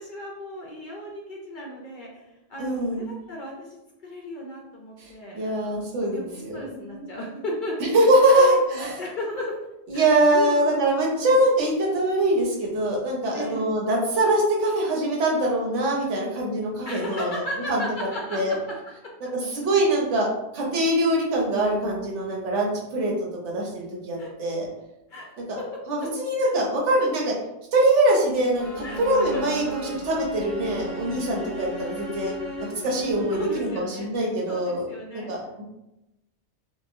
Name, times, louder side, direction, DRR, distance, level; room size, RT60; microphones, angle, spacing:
voice 1, 0.0-5.8 6.1-6.2 6.5-7.9 8.3-9.6 9.9-11.4 13.3-13.7 16.9-18.6 19.0-19.1 24.2-24.3 25.1-25.3 25.6-26.1 26.4-26.5 28.8-29.7 33.3-34.1 34.5-35.3, left 1 dB, 60° left, -2 dB, 0.5 m, -35 dB
voice 2, 2.6-3.1 5.0-5.1 5.3-7.1 7.9-9.0 9.9-17.3 17.7-17.8 18.3-18.5 19.2-20.3 20.5-24.7 25.5-25.6 25.9-27.4 27.7-32.3 32.6-34.8 35.3-35.6, right 1 dB, 80° right, -2 dB, 1.1 m, -23 dB
sound 1, 28.6-34.0, left 1 dB, ahead, 0.4 m, -36 dB
2.9 x 2.2 x 2.4 m, 0.91 s
omnidirectional pair, 1.2 m